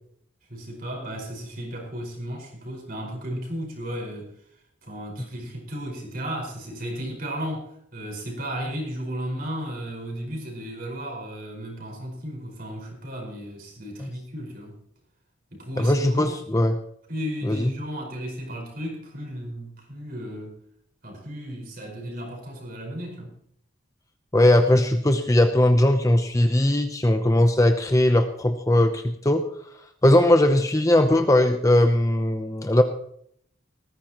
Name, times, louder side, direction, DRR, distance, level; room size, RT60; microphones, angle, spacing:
voice 1, 0.5-4.3 4.8-14.8 15.5-16.4 17.1-20.6 21.0-23.3, equal, 45° right, 0 dB, 5.1 m, -34 dB
voice 2, 15.8-16.8 17.4-17.7 24.3-29.5 30.0-32.8, left 1 dB, 15° left, 7 dB, 0.7 m, -19 dB
19.0 x 15.0 x 3.0 m, 0.68 s
head